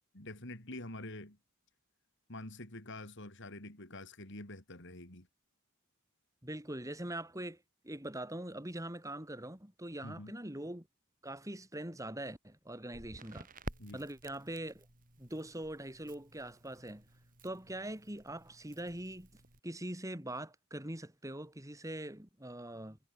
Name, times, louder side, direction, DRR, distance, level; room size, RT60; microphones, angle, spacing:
voice 1, 0.1-1.4 2.3-5.3 10.0-10.3 13.8-14.0, left 1 dB, 55° left, 5.2 m, -46 dB
voice 2, 6.4-7.6 7.8-10.9 11.2-13.5 13.9-14.9 15.2-17.0 17.4-23.0, right 1 dB, 15° right, 3.2 m, -42 dB
Crackle, 12.9-19.6, right 1 dB, 40° right, 4.7 m, -52 dB
head